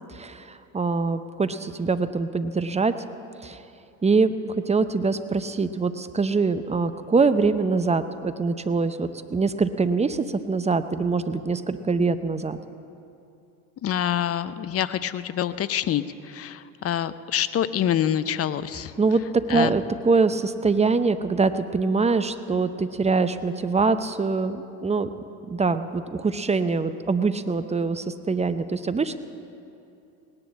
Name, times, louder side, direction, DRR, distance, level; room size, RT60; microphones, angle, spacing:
voice 1, 0.1-2.9 3.4-3.6 4.0-12.6 19.0-25.1 25.5-29.2, right 4 dB, 15° right, 11 dB, 0.7 m, -24 dB
voice 2, 13.8-18.9 19.5-19.7, left 10 dB, 35° left, 14 dB, 0.6 m, -26 dB
18.5 x 10.5 x 7.2 m, 2.7 s
hypercardioid pair, 75°, 44 cm